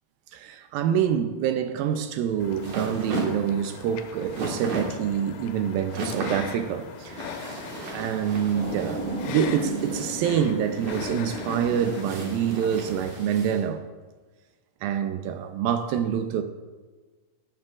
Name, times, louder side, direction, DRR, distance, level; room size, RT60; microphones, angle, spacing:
voice 1, 0.3-7.6 7.9-13.8 14.8-16.4, right 8 dB, 80° right, 2.2 m, -26 dB
sound 1, 1.9-13.6, right 2 dB, 55° right, 2.7 m, -36 dB
sound 2, 2.4-13.3, left 8 dB, 90° left, 2.6 m, -41 dB
Halloween - Graveyard At Night Howling Wind, 8.5-13.5, right 3 dB, 20° left, 2.5 m, -35 dB
16.5 x 7.5 x 2.4 m
omnidirectional pair, 4.4 m